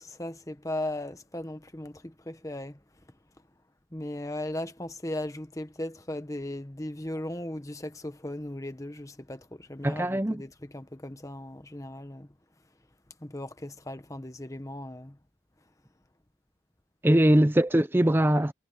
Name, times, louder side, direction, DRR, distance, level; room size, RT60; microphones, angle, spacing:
voice 1, 0.0-2.8 3.9-12.3 13.2-15.2, left 1 dB, 15° left, 1.2 m, -37 dB
voice 2, 9.8-10.4 17.0-18.5, right 1 dB, 10° right, 0.5 m, -22 dB
head